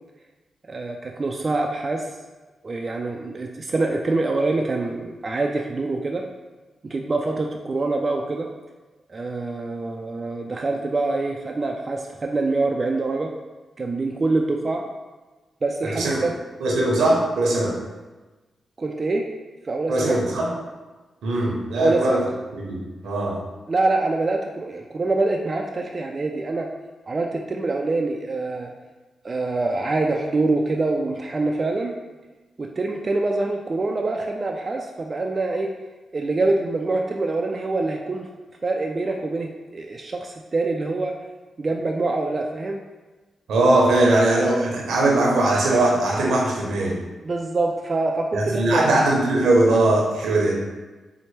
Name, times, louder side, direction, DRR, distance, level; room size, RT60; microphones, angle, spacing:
voice 1, 0.7-2.0 2.6-6.2 6.8-8.5 9.1-13.3 13.8-14.8 15.6-16.3 18.8-19.3 19.7-20.2 21.8-22.2 23.7-26.7 27.1-28.7 29.2-31.9 32.6-35.7 36.1-38.3 38.6-41.1 41.6-42.8 47.2-49.0, right 3 dB, 45° right, 1 dB, 0.3 m, -25 dB
voice 2, 15.8-16.3 16.6-17.8 19.9-20.5 21.2-22.3 22.5-23.4 43.5-47.0 48.3-50.6, right 2 dB, 85° right, -3 dB, 0.8 m, -20 dB
4.3 x 2.1 x 3.2 m, 1.2 s
cardioid pair, 55°, 0 cm